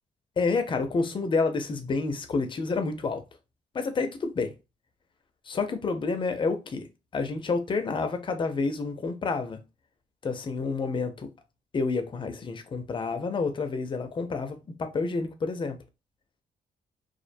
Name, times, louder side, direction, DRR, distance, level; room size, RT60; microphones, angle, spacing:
voice 1, 0.4-3.2 3.7-4.5 5.5-6.9 7.1-9.6 10.2-11.3 11.7-15.8, left 4 dB, 35° left, 0.5 m, -29 dB
2.4 x 2.1 x 2.5 m
cardioid pair, 90°, 14 cm